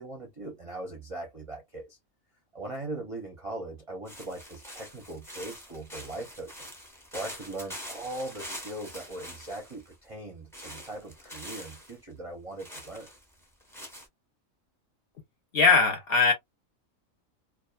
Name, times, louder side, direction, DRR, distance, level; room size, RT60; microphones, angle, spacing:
voice 1, 0.0-2.0 2.5-6.7 7.1-13.1, right 2 dB, 40° right, 0.5 m, -40 dB
sound 1, 4.1-9.9 10.5-11.9 12.6-14.1, equal, 5° left, 0.6 m, -44 dB
voice 2, 15.5-16.3, left 4 dB, 55° left, 0.7 m, -20 dB
2.4 x 2.3 x 2.2 m
omnidirectional pair, 1.4 m